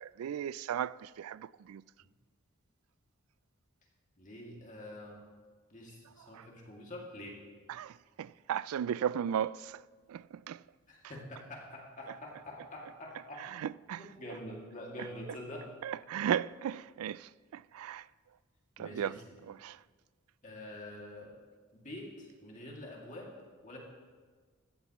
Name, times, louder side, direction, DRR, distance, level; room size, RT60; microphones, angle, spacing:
voice 1, 0.0-1.8 6.3-6.5 7.7-9.8 10.1-10.6 13.4-14.1 15.0-15.1 15.8-18.1 18.8-19.1 19.5-19.8, right 9 dB, 90° right, 0.3 m, -36 dB
voice 2, 4.2-5.2 5.7-7.4 10.9-13.5 14.0-15.7 18.8-19.3 20.4-21.3 21.7-23.3 23.6-23.8, left 1 dB, 35° left, 2.3 m, -46 dB
15.0 x 14.0 x 3.0 m
head